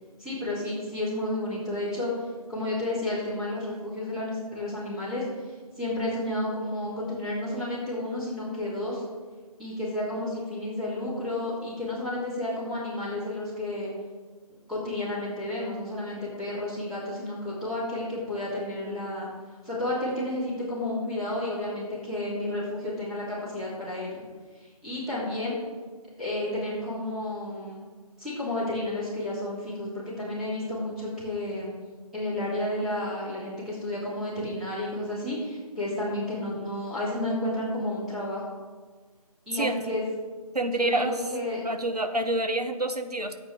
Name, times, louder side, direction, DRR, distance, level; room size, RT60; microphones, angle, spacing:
voice 1, 0.2-9.0 9.6-13.9 14.7-19.3 19.6-24.1 24.5-25.6 26.2-27.8 28.2-31.7 32.1-38.4 39.5-40.0 40.7-41.6, left 1 dB, ahead, -12 dB, 3.0 m, -31 dB
voice 2, 40.5-41.2 41.6-43.4, right 2 dB, 85° right, 7 dB, 1.2 m, -27 dB
14.5 x 8.6 x 3.7 m, 1.4 s
figure-of-eight pair, 155°, 20 cm